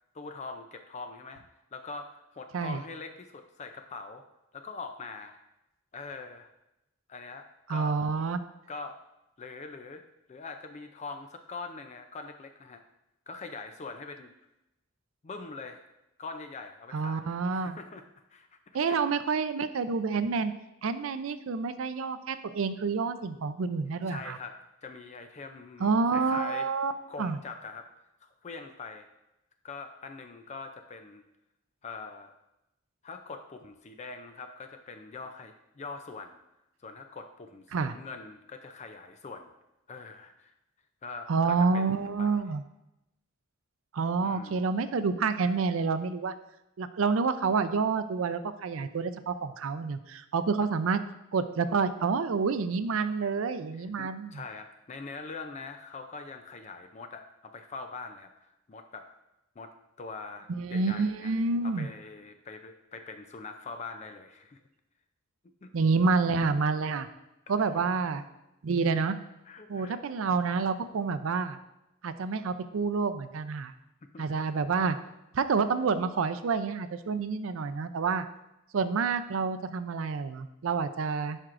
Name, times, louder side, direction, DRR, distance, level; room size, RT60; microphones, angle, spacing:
voice 1, 0.1-1.4 1.7-4.2 4.5-5.4 5.9-6.5 7.1-8.0 8.7-9.0 9.4-12.8 13.3-14.3 15.2-15.9 16.2-19.0 24.1-26.7 27.1-27.9 28.2-29.1 29.6-31.2 31.8-32.3 33.0-36.4 36.8-39.5 39.9-40.5 41.0-42.4 44.2-44.6 53.7-59.1 59.6-59.7 60.0-61.3 61.6-64.6 65.6-65.7 67.6-67.8 69.4-70.0 74.1-74.2, left 4 dB, 35° left, 7 dB, 0.4 m, -43 dB
voice 2, 7.7-8.4 16.9-17.8 18.7-20.5 20.8-24.4 25.8-26.9 27.2-27.4 37.7-38.0 41.3-42.6 43.9-46.3 46.8-51.0 51.3-54.3 60.5-61.9 65.7-67.1 67.5-68.2 68.6-69.2 69.7-71.6 72.0-73.7 74.2-75.0 75.3-78.3 78.7-81.4, right 4 dB, 85° right, 11 dB, 0.5 m, -28 dB
10.5 x 4.4 x 2.5 m, 0.91 s
head